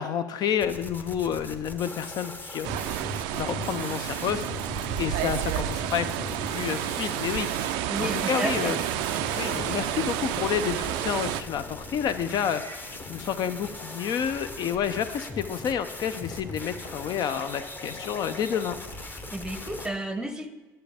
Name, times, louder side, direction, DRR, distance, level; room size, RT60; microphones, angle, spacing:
voice 1, 0.0-2.7 3.3-4.4 5.0-7.7 8.0-8.8 9.3-12.8 13.1-18.8, left 8 dB, 50° left, 11 dB, 0.6 m, -29 dB
sound 1, 0.6-19.9, left 2 dB, 20° left, 0.9 m, -40 dB
sound 2, 1.4-8.9 9.1-9.8 10.1-20.0, left 4 dB, 85° left, 1.0 m, -49 dB
sound 3, 2.6-11.4, right 12 dB, 70° right, 0.4 m, -30 dB
voice 2, 7.9-8.7 19.3-20.5, right 1 dB, 5° right, 10 dB, 0.8 m, -32 dB
9.9 x 6.6 x 3.5 m, 1.3 s
hypercardioid pair, 70°, 9 cm